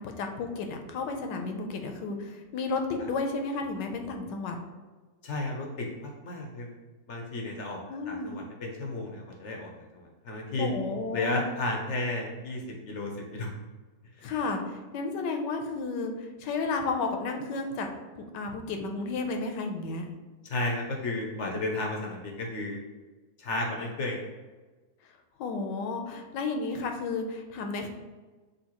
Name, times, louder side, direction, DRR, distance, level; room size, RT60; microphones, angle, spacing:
voice 1, 0.0-4.6 7.9-8.3 10.6-11.4 14.2-20.0 25.4-27.9, left 3 dB, 80° left, 4 dB, 1.3 m, -32 dB
voice 2, 5.2-6.8 7.1-7.8 8.1-10.7 11.1-13.5 14.2-14.3 20.4-22.8 23.4-24.3, left 2 dB, 60° left, 0 dB, 0.7 m, -33 dB
6.4 x 2.7 x 2.9 m, 1.3 s
omnidirectional pair, 1.9 m